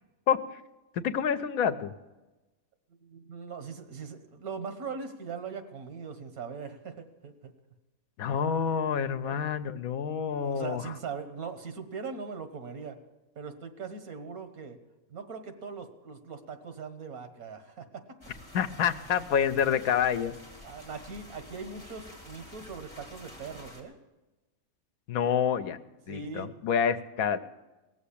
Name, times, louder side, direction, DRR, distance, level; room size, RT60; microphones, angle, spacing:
voice 1, 1.0-1.9 8.2-10.8 18.5-20.3 25.1-25.8 26.1-27.4, left 7 dB, 80° left, 11 dB, 1.2 m, -27 dB
voice 2, 3.0-7.5 9.2-9.4 10.3-13.0 13.4-14.8 15.1-18.2 20.6-24.0 26.1-26.5 26.9-27.0, right 5 dB, 85° right, 8 dB, 1.8 m, -40 dB
sound 1, 18.2-23.8, equal, 20° left, 2.6 m, -49 dB
18.0 x 7.2 x 8.5 m, 1.1 s
omnidirectional pair, 1.5 m